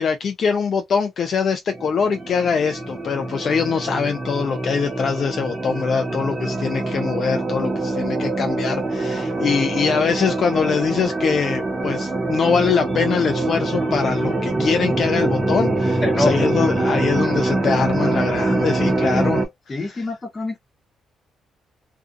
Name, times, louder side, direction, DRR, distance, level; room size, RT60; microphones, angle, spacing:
voice 1, 0.0-19.8, left 6 dB, 55° left, 0.4 m, -23 dB
sound 1, 1.7-19.5, right 2 dB, 20° right, 1.0 m, -24 dB
voice 2, 16.0-16.4 19.7-20.6, left 2 dB, 25° left, 1.0 m, -24 dB
2.5 x 2.3 x 2.4 m
cardioid pair, 90°, 0 cm